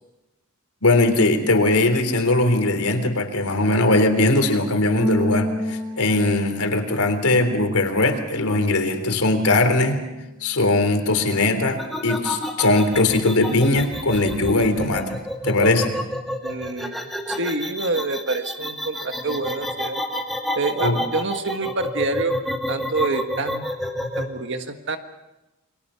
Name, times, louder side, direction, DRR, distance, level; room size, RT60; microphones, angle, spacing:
voice 1, 0.8-10.0 10.4-15.2 15.4-16.0 20.8-21.0, left 2 dB, 80° left, 6 dB, 3.6 m, -20 dB
sound 1, 5.0-9.6 9.8-11.3, left 1 dB, 20° right, 4.4 m, -33 dB
voice 2, 7.3-7.6 16.4-20.0 20.5-22.4 22.7-23.7 24.2-25.0, right 3 dB, 55° right, 6 dB, 1.6 m, -27 dB
sound 2, 11.8-24.3, equal, ahead, 2.1 m, -29 dB
29.0 x 23.5 x 5.7 m, 1.0 s
head